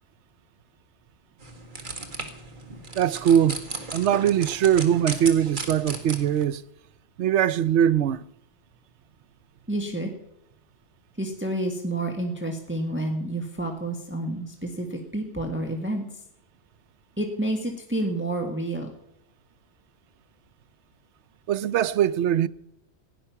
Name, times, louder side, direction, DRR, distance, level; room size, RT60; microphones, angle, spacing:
sound 1, 1.4-6.4, right 3 dB, 45° right, 1.8 m, -36 dB
voice 1, 2.9-3.6 3.9-6.6 7.2-8.2 21.5-22.5, right 9 dB, 75° right, 0.9 m, -21 dB
voice 2, 9.7-10.1 11.2-16.0 17.2-18.9, right 1 dB, 10° right, 1.5 m, -29 dB
16.5 x 11.0 x 5.8 m
omnidirectional pair, 1.2 m